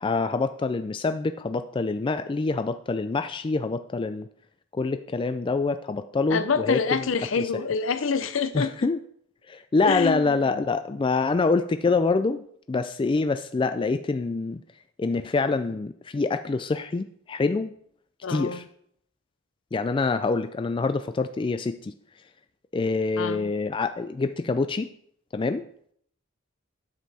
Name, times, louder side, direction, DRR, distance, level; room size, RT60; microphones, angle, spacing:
voice 1, 0.0-4.3 4.7-7.1 7.4-7.6 8.5-9.0 9.5-14.6 15.0-17.7 18.3-18.6 19.7-21.9 22.7-24.9 25.3-25.7, left 3 dB, 25° left, 0.3 m, -26 dB
voice 2, 6.3-8.7 9.8-10.4 18.2-18.6 23.2-23.5, left 5 dB, 65° left, 0.6 m, -26 dB
9.2 x 7.4 x 4.2 m
head